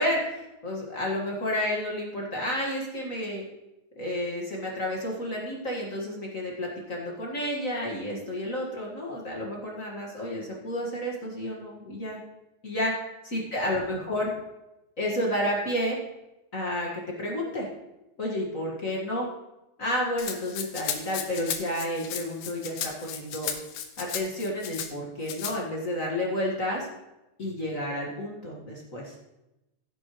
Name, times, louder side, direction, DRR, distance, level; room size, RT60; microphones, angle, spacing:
voice 1, 0.0-3.4 4.0-12.2 12.6-13.0 13.2-14.3 15.0-16.0 16.5-16.9 17.2-17.7 18.2-19.3 19.8-23.5 24.0-26.9 27.4-29.1, left 1 dB, 35° left, -2 dB, 1.6 m, -31 dB
Rattle (instrument), 20.2-24.9 25.3-25.6, left 9 dB, 85° left, 2.4 m, -35 dB
15.5 x 8.0 x 3.1 m, 0.96 s
omnidirectional pair, 3.4 m